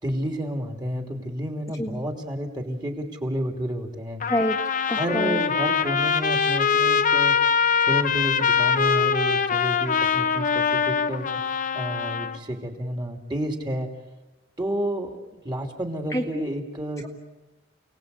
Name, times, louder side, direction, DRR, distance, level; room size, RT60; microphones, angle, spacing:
voice 1, 0.0-4.2 4.9-7.3 7.8-13.9 14.6-17.0, equal, 25° right, 3 dB, 3.1 m, -30 dB
voice 2, 1.7-2.1 4.3-4.6 4.9-5.4 16.1-16.5 17.0-17.1, equal, 15° left, 2 dB, 1.5 m, -27 dB
Trumpet, 4.2-12.4, left 6 dB, 45° left, 0.9 m, -23 dB
29.5 x 19.0 x 8.4 m, 1.1 s
head